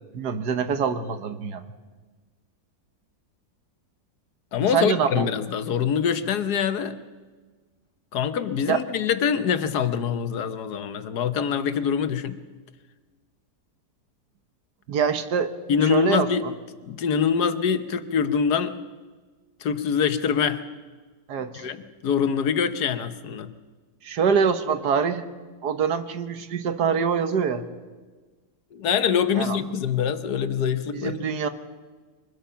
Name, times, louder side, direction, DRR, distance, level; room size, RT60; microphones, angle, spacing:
voice 1, 0.1-1.6 4.7-5.3 8.7-8.8 14.9-15.5 15.8-16.5 21.3-21.7 24.0-25.3 25.6-27.6 29.4-29.6 30.9-31.5, right 6 dB, 75° right, 10 dB, 1.7 m, -24 dB
voice 2, 4.5-7.0 8.1-12.4 15.7-16.4 16.9-18.8 19.6-20.6 21.5-23.5 28.7-31.1, left 7 dB, 75° left, 11 dB, 1.6 m, -24 dB
23.5 x 20.5 x 5.7 m, 1.4 s
omnidirectional pair, 1.7 m